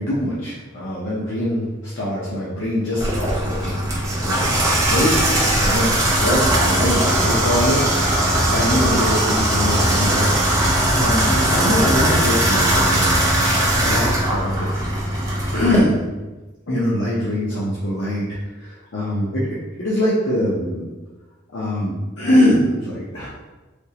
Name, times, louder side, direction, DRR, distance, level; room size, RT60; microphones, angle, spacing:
voice 1, 0.0-3.8 4.2-5.3 5.5-10.3 10.9-14.7 15.5-16.0 16.7-19.5 19.8-20.9 21.5-23.3, left 1 dB, 75° left, -7 dB, 0.7 m, -23 dB
Water tap faucet / Bathtub (filling or washing), 3.0-15.8, right 1 dB, 15° right, 0.6 m, -19 dB
3.5 x 2.8 x 2.8 m, 1.2 s
head